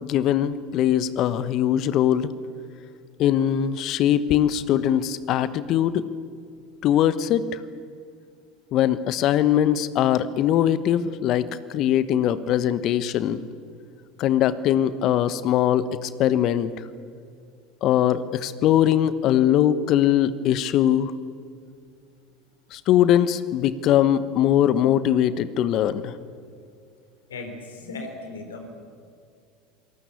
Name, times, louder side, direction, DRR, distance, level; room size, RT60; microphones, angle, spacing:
voice 1, 0.0-2.3 3.2-6.0 6.8-7.4 8.7-13.4 14.2-16.7 17.8-21.1 22.7-26.1, left 11 dB, 50° left, 15 dB, 1.1 m, -21 dB
voice 2, 27.3-28.8, left 3 dB, 80° left, 5 dB, 3.8 m, -37 dB
27.0 x 19.0 x 8.4 m, 2.3 s
figure-of-eight pair, 75°, 0 cm